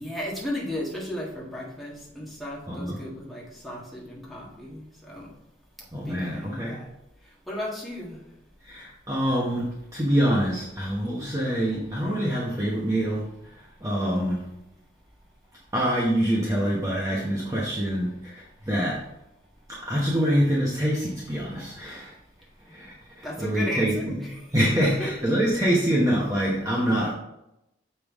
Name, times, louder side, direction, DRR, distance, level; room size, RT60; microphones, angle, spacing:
voice 1, 0.0-5.3 5.9-6.9 7.5-8.2 23.2-24.4 25.0-25.1, left 1 dB, ahead, -4 dB, 1.5 m, -35 dB
voice 2, 2.7-3.0 5.9-6.8 8.6-13.3 13.6-14.4 15.7-19.1 19.7-22.1 22.7-24.2 24.5-27.1, equal, 15° right, -5 dB, 0.9 m, -25 dB
6.6 x 5.4 x 3.6 m, 0.85 s
head